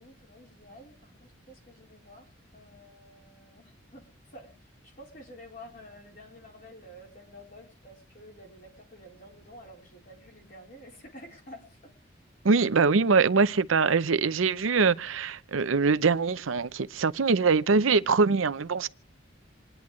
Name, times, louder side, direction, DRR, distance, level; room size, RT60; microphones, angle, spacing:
voice 1, 0.0-4.5 4.8-11.9, equal, 45° left, 4.0 m, -50 dB
voice 2, 12.4-18.9, right 4 dB, 85° right, 0.6 m, -23 dB
27.5 x 10.5 x 3.1 m
head